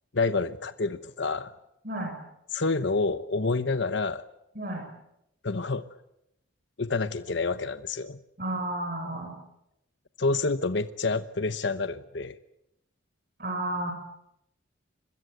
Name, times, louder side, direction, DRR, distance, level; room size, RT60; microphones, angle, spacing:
voice 1, 0.1-1.5 2.5-4.2 5.4-5.8 6.8-8.2 10.2-12.4, left 3 dB, 65° left, 12 dB, 0.9 m, -28 dB
voice 2, 4.5-4.9 8.4-9.3 13.4-13.9, right 1 dB, 50° right, 3 dB, 6.6 m, -31 dB
26.0 x 22.5 x 8.0 m, 0.83 s
head